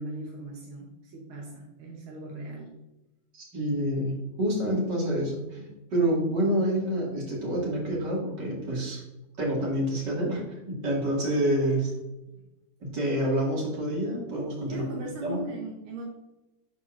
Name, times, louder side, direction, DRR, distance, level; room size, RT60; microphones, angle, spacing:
voice 1, 0.0-2.8 11.2-11.9 14.7-16.0, right 1 dB, 80° right, -1 dB, 1.9 m, -39 dB
voice 2, 3.3-9.0 9.4-11.9 12.8-14.8 15.2-15.4, right 1 dB, 55° right, -4 dB, 2.8 m, -28 dB
12.0 x 4.3 x 2.5 m, 1.0 s
omnidirectional pair, 2.3 m